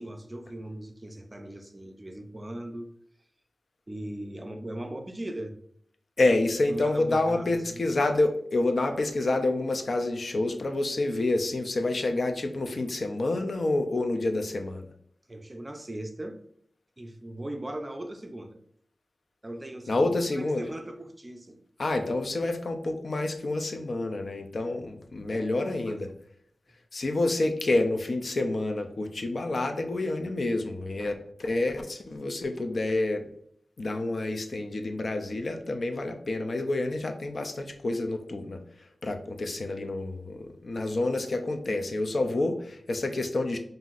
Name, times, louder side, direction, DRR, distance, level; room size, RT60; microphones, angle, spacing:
voice 1, 0.0-2.9 3.9-5.6 6.7-8.0 15.3-16.4 17.0-18.6 19.4-21.6 25.3-26.0 26.7-26.8, right 1 dB, 25° right, 5 dB, 0.5 m, -39 dB
voice 2, 6.2-14.9 19.9-20.6 21.8-26.1 26.9-31.1 31.4-33.3 33.8-38.6 39.0-43.6, left 2 dB, 60° left, 6 dB, 0.5 m, -28 dB
5.6 x 2.6 x 2.5 m, 0.65 s
wide cardioid pair, 90°, 0 cm